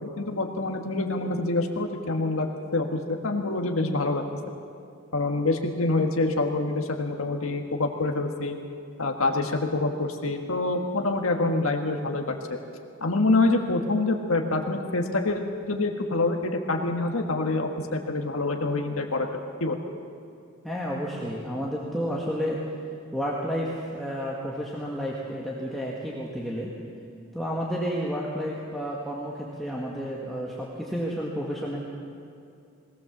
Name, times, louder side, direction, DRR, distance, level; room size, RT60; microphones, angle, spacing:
voice 1, 0.0-4.2 5.1-8.6 9.0-12.3 13.0-19.3 19.6-19.8, left 2 dB, 85° left, 3 dB, 1.5 m, -26 dB
voice 2, 20.6-22.6 23.1-26.7 27.3-31.8, equal, ahead, -5 dB, 1.8 m, -31 dB
21.5 x 17.0 x 7.2 m, 2.5 s
head